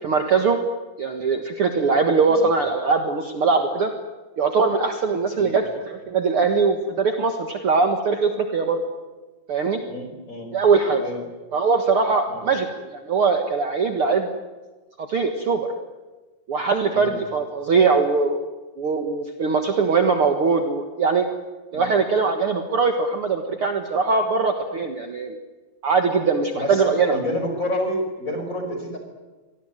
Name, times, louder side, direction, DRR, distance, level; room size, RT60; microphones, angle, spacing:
voice 1, 0.0-0.6 1.0-3.9 4.4-8.8 9.5-9.8 10.5-11.0 11.5-12.7 12.9-14.3 15.0-15.7 16.5-18.4 18.8-21.3 21.7-25.4 25.8-27.2, right 4 dB, 50° right, 5 dB, 2.2 m, -21 dB
voice 2, 9.8-10.5 11.0-11.2 12.3-12.4 16.9-17.1 21.7-21.9 26.6-29.0, left 1 dB, 25° left, 4 dB, 5.8 m, -29 dB
26.0 x 18.5 x 9.2 m, 1.2 s
omnidirectional pair, 3.7 m